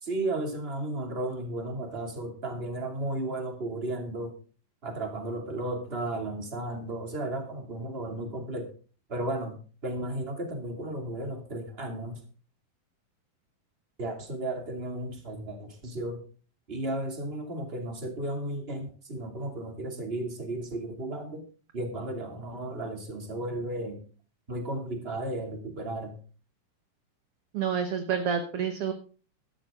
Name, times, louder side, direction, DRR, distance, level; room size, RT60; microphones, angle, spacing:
voice 1, 0.0-4.3 4.8-8.7 9.1-9.6 9.8-12.2 14.0-16.2 16.7-21.4 21.7-24.0 24.5-26.1, right 1 dB, 20° right, 4 dB, 2.4 m, -34 dB
voice 2, 27.5-28.9, right 7 dB, 60° right, 7 dB, 1.6 m, -28 dB
13.5 x 12.5 x 3.7 m, 0.38 s
omnidirectional pair, 3.8 m